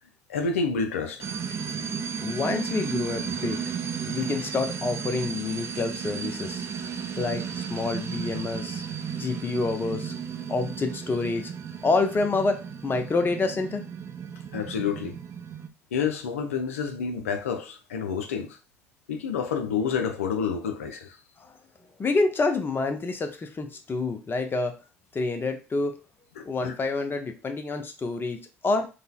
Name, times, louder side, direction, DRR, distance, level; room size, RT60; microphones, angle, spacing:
voice 1, 0.3-1.2 14.5-15.2 15.9-18.6 19.1-21.2 26.4-26.7, left 6 dB, 80° left, 0.4 m, -29 dB
sound 1, 1.2-15.7, right 7 dB, 35° right, 0.4 m, -34 dB
voice 2, 1.5-3.6 4.0-6.6 7.2-8.8 9.2-10.1 10.5-11.5 11.8-13.8 21.4-21.6 22.0-24.7 25.1-25.9 26.4-28.9, left 3 dB, 30° left, 0.6 m, -28 dB
3.8 x 2.1 x 2.3 m
figure-of-eight pair, 55°, 7 cm